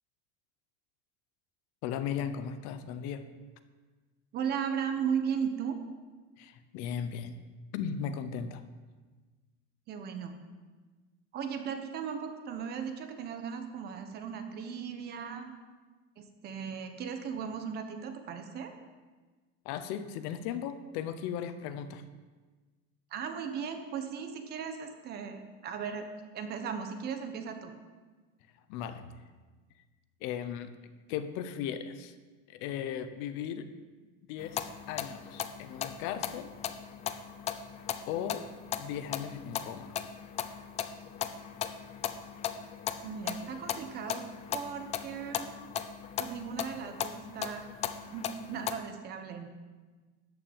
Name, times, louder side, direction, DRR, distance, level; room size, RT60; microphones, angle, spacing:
voice 1, 1.8-3.3 6.4-7.4 7.7-8.6 19.6-22.0 28.7-29.1 30.2-30.7 31.1-32.1 32.5-33.7 34.3-36.5 38.1-38.5 38.8-40.0, left 8 dB, 55° left, 11 dB, 0.9 m, -37 dB
voice 2, 4.3-5.8 9.9-10.3 11.3-15.5 16.2-18.7 23.1-26.1 26.3-27.7 43.0-44.3 44.5-45.6 46.2-47.7 48.1-49.5, right 7 dB, 30° right, 6 dB, 1.2 m, -36 dB
sound 1, 34.4-48.7, left 9 dB, 20° left, 0.4 m, -38 dB
13.5 x 5.8 x 9.1 m, 1.3 s
cardioid pair, 175°, 30 cm